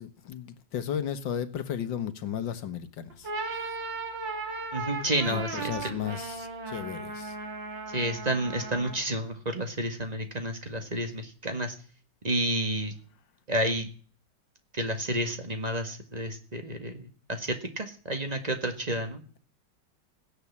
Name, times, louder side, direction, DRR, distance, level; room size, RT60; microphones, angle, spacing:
voice 1, 0.0-3.3 5.2-7.4, left 9 dB, 85° left, 2.0 m, -34 dB
sound 1, 3.1-9.1, right 3 dB, 80° right, 2.8 m, -36 dB
voice 2, 4.7-6.0 7.9-11.8 12.2-12.9 13.5-13.9 14.7-19.2, right 1 dB, 20° right, 1.8 m, -30 dB
16.0 x 10.5 x 7.3 m
omnidirectional pair, 2.0 m